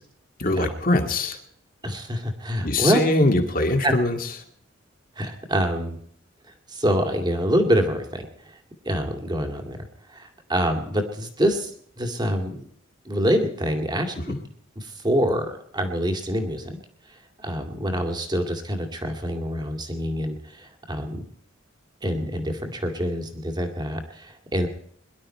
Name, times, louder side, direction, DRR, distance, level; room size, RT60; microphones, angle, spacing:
voice 1, 0.4-1.4 2.6-4.2 14.3-14.4, left 2 dB, 45° left, 5 dB, 2.2 m, -22 dB
voice 2, 1.8-3.3 3.8-3.9 5.2-6.0 6.7-8.3 8.8-11.7 12.0-12.7 13.1-14.2 14.8-16.8 17.4-21.2 22.0-24.7, equal, 20° right, 5 dB, 2.2 m, -26 dB
22.0 x 11.5 x 4.4 m, 0.64 s
head